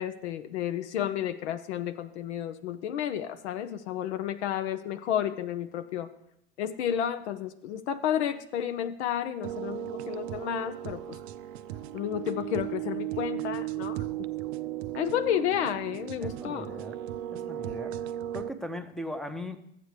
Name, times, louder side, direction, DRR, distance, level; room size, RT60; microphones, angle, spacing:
voice 1, 0.0-6.1 6.6-11.2 11.9-14.1 14.9-16.7, left 10 dB, 75° left, 10 dB, 0.6 m, -31 dB
sound 1, 9.4-18.5, right 13 dB, 65° right, 0.5 m, -36 dB
voice 2, 16.2-17.0 17.3-17.9 18.3-19.6, left 1 dB, ahead, 8 dB, 0.7 m, -38 dB
13.0 x 8.2 x 3.2 m, 0.76 s
hypercardioid pair, 95°, 34 cm